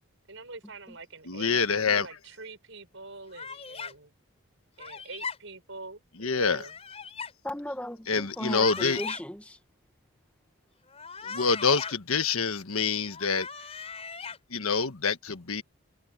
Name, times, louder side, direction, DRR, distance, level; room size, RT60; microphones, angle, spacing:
voice 1, 0.3-4.1 4.8-6.8, right 3 dB, 65° right, 5.7 m, -45 dB
voice 2, 1.3-2.0 6.2-6.6 8.1-9.0 11.2-13.5 14.5-15.6, left 5 dB, 85° left, 1.4 m, -26 dB
sound 1, 3.3-3.9 4.8-5.4 6.5-7.3 8.3-9.2 10.9-11.9 13.1-14.4, left 5 dB, 30° left, 5.4 m, -38 dB
voice 3, 7.4-9.6, left 1 dB, 5° left, 1.5 m, -36 dB
head